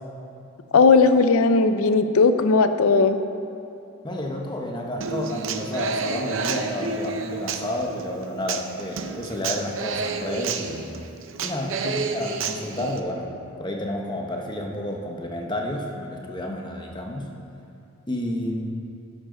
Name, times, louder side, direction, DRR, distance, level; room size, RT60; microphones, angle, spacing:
voice 1, 0.7-3.2, left 4 dB, 70° left, 10 dB, 0.5 m, -17 dB
voice 2, 4.0-10.9 11.4-13.3 13.6-17.3 18.1-18.7, left 1 dB, 20° left, 1 dB, 1.0 m, -30 dB
Human voice / Acoustic guitar, 5.0-13.0, right 4 dB, 55° right, 0.6 m, -30 dB
11.5 x 10.0 x 3.9 m, 2.6 s
head